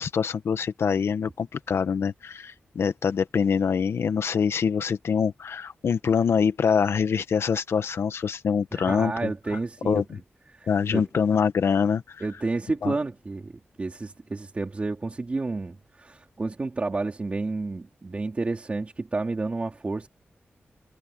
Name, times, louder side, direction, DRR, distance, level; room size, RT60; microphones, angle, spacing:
voice 1, 0.0-9.3 9.8-10.2 10.7-12.2 12.8-12.9, left 6 dB, 90° left, 1.3 m, -25 dB
voice 2, 8.7-10.0 10.5-11.0 12.2-13.5 13.8-20.1, right 3 dB, 30° right, 3.8 m, -30 dB
wide cardioid pair, 160°, 4 cm